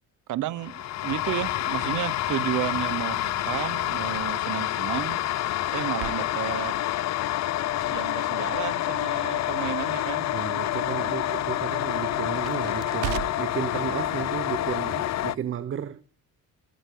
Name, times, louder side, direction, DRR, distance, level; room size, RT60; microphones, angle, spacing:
voice 1, 0.3-5.2 5.7-6.7 7.9-10.3, right 13 dB, 60° right, 1.1 m, -32 dB
sound 1, 0.6-15.4, left 14 dB, 50° left, 0.6 m, -28 dB
Crackle, 2.7-13.6, right 16 dB, 90° right, 0.8 m, -43 dB
voice 2, 10.3-16.0, right 9 dB, 35° right, 0.9 m, -33 dB
27.5 x 11.5 x 3.8 m
cardioid pair, 145°, 34 cm